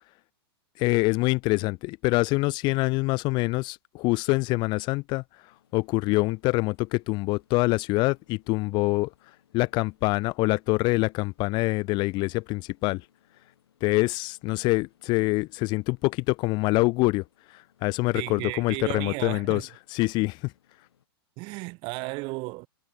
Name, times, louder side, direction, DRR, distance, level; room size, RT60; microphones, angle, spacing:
voice 1, 0.8-5.2 5.7-9.1 9.5-13.0 13.8-17.2 17.5-19.6 19.9-20.5, left 24 dB, 35° left, 0.4 m, -25 dB
sound 1, 5.5-21.1, left 9 dB, 80° left, 7.2 m, -66 dB
voice 2, 18.1-19.7 21.4-22.7, right 26 dB, 40° right, 0.6 m, -34 dB
hypercardioid pair, 125°, 13 cm